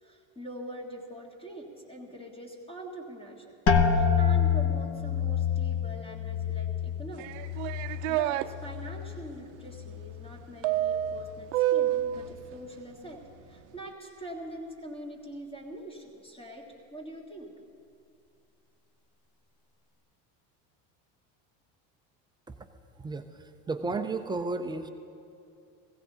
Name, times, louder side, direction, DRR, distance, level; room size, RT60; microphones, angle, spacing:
voice 1, 0.0-3.6 3.9-7.4 7.9-13.2 13.5-17.5, right 1 dB, 15° left, -1 dB, 1.8 m, -43 dB
sound 1, 3.7-9.3 9.6-10.3 10.9-11.3, left 7 dB, 40° left, 0.9 m, -28 dB
sound 2, 7.2-8.5 10.6-12.3, right 13 dB, 75° right, 0.6 m, -28 dB
voice 2, 23.0-24.9, right 3 dB, 10° right, 6 dB, 0.4 m, -33 dB
17.0 x 16.0 x 3.9 m, 2.6 s
cardioid pair, 145°, 37 cm